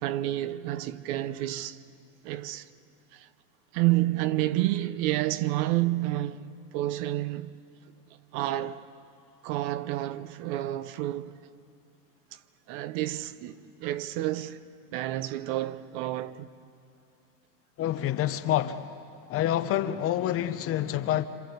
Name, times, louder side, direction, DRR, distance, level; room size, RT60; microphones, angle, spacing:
voice 1, 0.0-1.8 2.2-2.7 3.1-3.3 3.7-7.5 8.3-8.8 9.4-11.3 12.3-12.4 12.7-14.6 14.9-16.5, right 15 dB, 45° right, 0.9 m, -29 dB
voice 2, 17.8-19.0 19.3-21.3, left 12 dB, 30° left, 0.8 m, -27 dB
26.5 x 26.5 x 8.3 m
supercardioid pair, 130°, 47 cm